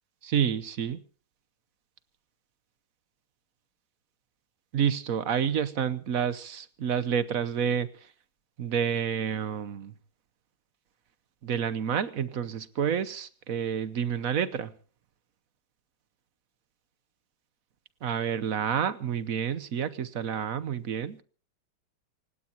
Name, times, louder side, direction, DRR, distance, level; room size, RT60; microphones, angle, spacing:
voice 1, 0.2-1.0 4.7-7.9 8.6-9.9 11.4-14.7 18.0-21.2, right 8 dB, 55° right, 16 dB, 1.0 m, -29 dB
28.5 x 17.0 x 2.9 m, 0.39 s
omnidirectional pair, 2.3 m